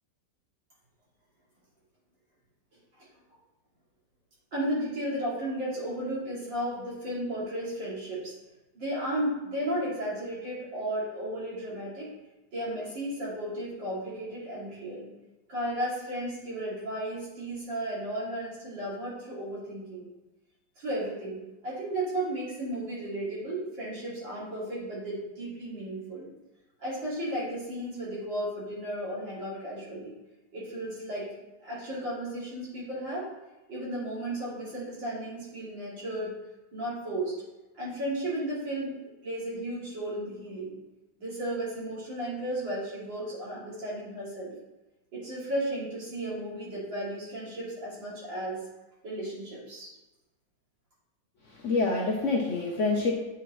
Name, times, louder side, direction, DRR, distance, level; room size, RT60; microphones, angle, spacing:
voice 1, 4.5-8.3 8.7-12.1 12.5-15.1 15.5-20.1 20.8-21.4 21.6-26.3 26.8-30.1 30.5-31.3 31.6-33.3 33.7-36.3 36.7-37.3 37.7-40.8 41.2-44.5 45.1-48.6 49.0-49.9, right 1 dB, 80° right, -8 dB, 3.4 m, -34 dB
voice 2, 51.5-53.1, left 3 dB, 55° left, -1 dB, 0.9 m, -27 dB
8.9 x 4.4 x 3.1 m, 1.0 s
omnidirectional pair, 2.0 m